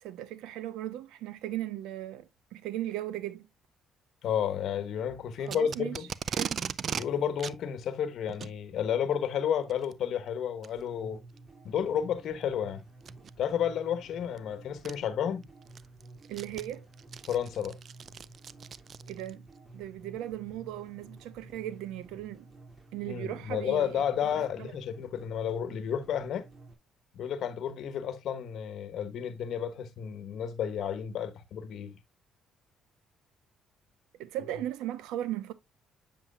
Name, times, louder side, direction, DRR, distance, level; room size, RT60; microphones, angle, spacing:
voice 1, 0.0-3.5 5.5-6.0 6.3-6.5 16.3-16.9 19.1-19.4 19.7-22.5 22.9-24.7 34.2-35.5, right 13 dB, 85° right, 0.8 m, -37 dB
voice 2, 4.2-6.1 6.9-11.2 11.6-12.8 13.4-15.5 17.2-17.8 23.1-26.4 27.1-32.0, left 8 dB, 65° left, 1.2 m, -31 dB
Packing tape duct tape, 5.5-7.1 7.4-7.6 8.3-8.5 9.7-9.9 10.6-10.7 11.4-11.5 13.0-13.3 14.4-14.5 14.8-14.9 15.4-19.3, right 7 dB, 50° right, 0.4 m, -37 dB
sound 1, 10.7-26.7, right 2 dB, 30° right, 2.6 m, -51 dB
7.5 x 7.4 x 2.3 m
cardioid pair, 85°, 0 cm